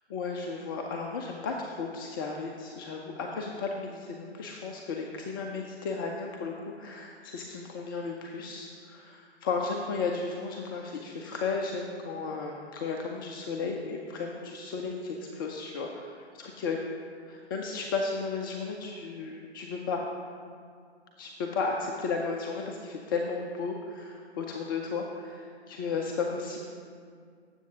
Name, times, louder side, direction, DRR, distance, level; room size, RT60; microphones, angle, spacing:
voice 1, 0.1-16.8 17.3-20.0 21.2-26.6, left 4 dB, 20° left, 1 dB, 0.4 m, -34 dB
16.5 x 7.5 x 2.8 m, 2.1 s
figure-of-eight pair, 115°, 34 cm